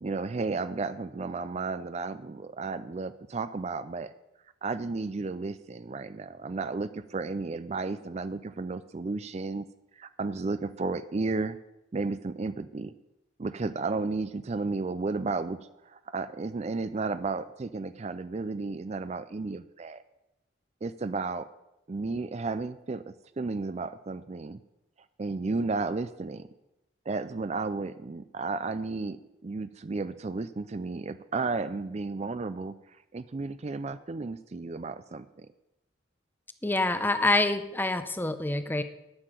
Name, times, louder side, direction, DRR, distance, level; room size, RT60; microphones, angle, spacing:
voice 1, 0.0-4.1 4.6-9.7 9.9-11.6 11.9-12.9 13.4-15.6 15.8-20.0 20.8-21.5 21.9-24.6 25.2-26.5 27.1-35.5, right 3 dB, 35° right, 13 dB, 0.4 m, -33 dB
voice 2, 36.6-38.8, left 2 dB, 10° left, 11 dB, 0.6 m, -26 dB
11.5 x 6.6 x 9.0 m, 0.90 s
head